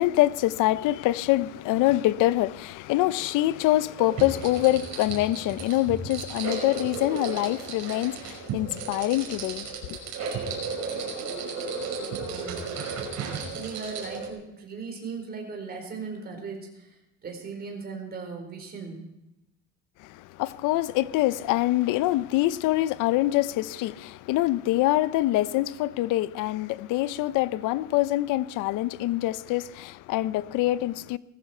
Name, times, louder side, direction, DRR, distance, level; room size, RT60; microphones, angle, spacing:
voice 1, 0.0-10.0 20.0-31.2, left 16 dB, 65° left, 0.7 m, -25 dB
sound 1, 4.0-14.3, right 4 dB, 55° right, 5.3 m, -34 dB
voice 2, 12.1-12.6 13.3-19.0, right 5 dB, 30° right, 4.5 m, -38 dB
19.0 x 15.0 x 4.5 m
cardioid pair, 145°, 33 cm